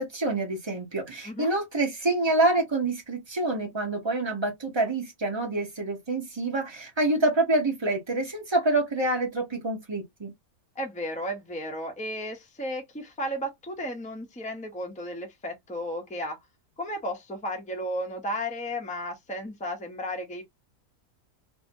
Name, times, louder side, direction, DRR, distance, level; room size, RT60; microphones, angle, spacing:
voice 1, 0.0-10.3, right 2 dB, 25° right, 0.8 m, -27 dB
voice 2, 10.8-16.4 16.8-20.4, equal, 10° left, 0.3 m, -34 dB
2.7 x 2.6 x 2.6 m
omnidirectional pair, 1.6 m